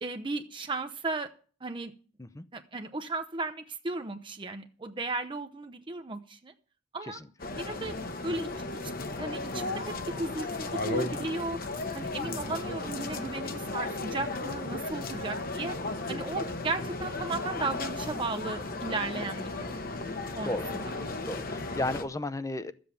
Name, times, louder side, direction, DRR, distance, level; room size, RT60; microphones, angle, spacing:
voice 1, 0.0-1.3 1.6-1.9 2.5-6.5 6.9-7.2 7.6-7.9 8.2-8.5 8.8-8.9 9.2-11.6 11.9-15.8 16.1-19.8 20.3-20.6, right 3 dB, 25° right, 7 dB, 0.7 m, -35 dB
sound 1, 7.4-22.0, left 2 dB, 50° left, 1.2 m, -35 dB
voice 2, 21.3-22.7, left 2 dB, 15° left, 14 dB, 0.6 m, -34 dB
13.0 x 7.8 x 6.9 m, 0.41 s
head